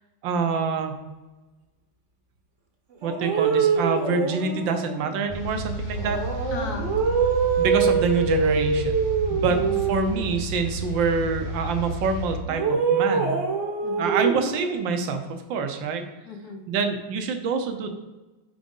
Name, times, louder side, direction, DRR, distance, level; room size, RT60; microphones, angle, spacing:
voice 1, 0.2-1.0 3.0-6.5 7.6-8.9 9.3-9.6 9.9-13.4 14.0-15.2 15.5-16.0 16.7-17.9, right 5 dB, 70° right, 6 dB, 1.4 m, -26 dB
sound 1, 3.0-5.1 6.0-10.3 12.5-14.8, right 5 dB, 45° right, 1.1 m, -24 dB
sound 2, 5.3-12.4, equal, 80° left, 2.0 m, -32 dB
voice 2, 6.5-7.3 9.4-10.1 13.8-14.2 16.2-16.7, left 4 dB, 60° left, 5 dB, 1.1 m, -37 dB
5.1 x 4.9 x 5.2 m, 1.2 s
omnidirectional pair, 2.3 m